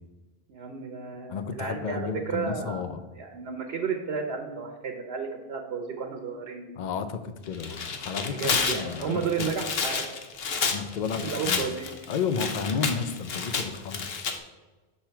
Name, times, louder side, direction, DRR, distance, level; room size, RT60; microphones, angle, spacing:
voice 1, 0.5-6.7 8.3-10.0 11.0-11.9, right 6 dB, 85° right, 2 dB, 1.0 m, -33 dB
voice 2, 1.3-3.0 6.8-9.5 10.7-11.6 12.1-14.3, left 6 dB, 55° left, 10 dB, 0.7 m, -32 dB
Tearing, 7.5-14.3, left 5 dB, 75° left, 1.0 m, -30 dB
6.8 x 5.8 x 4.5 m, 1.2 s
omnidirectional pair, 1.0 m